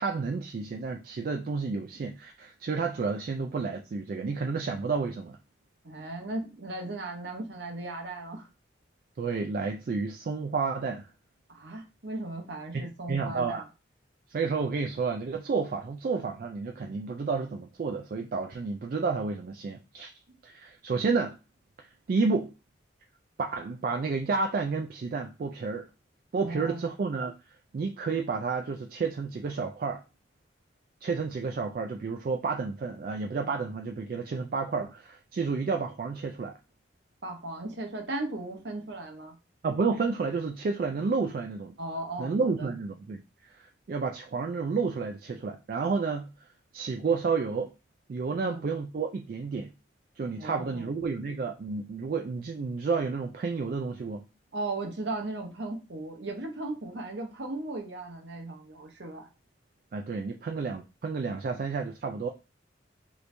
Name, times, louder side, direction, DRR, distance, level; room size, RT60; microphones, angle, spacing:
voice 1, 0.0-5.4 9.2-11.1 12.7-13.6 14.3-20.1 20.4-21.4 21.8-22.5 23.4-25.9 26.3-27.3 27.7-30.0 31.0-36.5 39.6-41.7 42.2-46.3 46.7-47.7 48.1-49.7 50.2-54.2 59.9-62.3, right 4 dB, 50° right, 0.3 m, -31 dB
voice 2, 5.8-8.5 11.5-13.6 26.4-26.8 37.2-39.4 41.8-42.7 48.4-48.6 50.4-51.0 54.5-59.3, right 2 dB, 65° right, 0.9 m, -37 dB
3.1 x 2.6 x 3.2 m
head